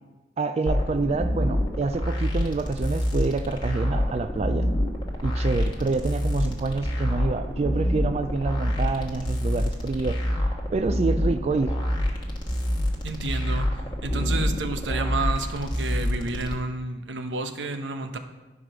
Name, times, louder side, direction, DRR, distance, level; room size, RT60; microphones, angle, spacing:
voice 1, 0.4-4.7 5.2-10.2 10.7-11.8, right 3 dB, 35° right, 8 dB, 0.3 m, -27 dB
sound 1, 0.7-16.5, equal, 25° left, 1.3 m, -27 dB
voice 2, 13.0-13.7 14.0-18.2, right 3 dB, 85° right, 7 dB, 0.8 m, -30 dB
10.0 x 4.8 x 6.1 m, 1.1 s
head